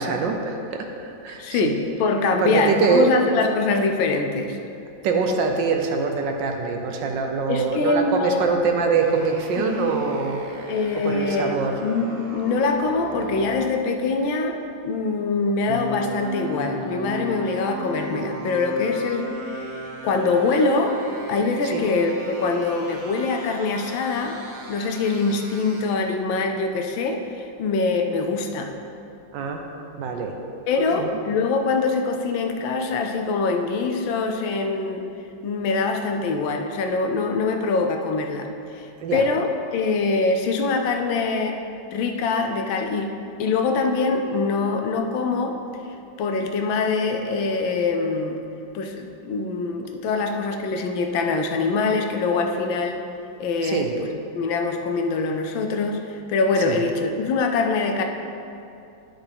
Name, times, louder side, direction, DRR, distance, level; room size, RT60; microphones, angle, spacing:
voice 1, 0.0-1.8 2.4-3.2 5.0-10.4 10.7-11.9 21.6-21.9 29.3-29.6 30.0-30.4 30.8-31.2 39.0-39.3 53.6-53.9 56.5-56.8, right 5 dB, 70° right, 3 dB, 1.3 m, -24 dB
voice 2, 1.4-4.6 7.5-8.5 9.6-9.9 10.7-14.6 14.8-21.0 21.3-24.4 24.7-28.7 30.7-35.1 35.4-38.5 38.7-41.6 41.9-45.6 46.2-48.4 48.7-53.0 53.4-54.1 54.3-58.0, left 4 dB, 80° left, 4 dB, 1.4 m, -24 dB
sound 1, 9.0-13.7 15.6-25.8, right 1 dB, 50° right, 0.7 m, -36 dB
10.5 x 5.7 x 3.5 m, 2.7 s
omnidirectional pair, 2.1 m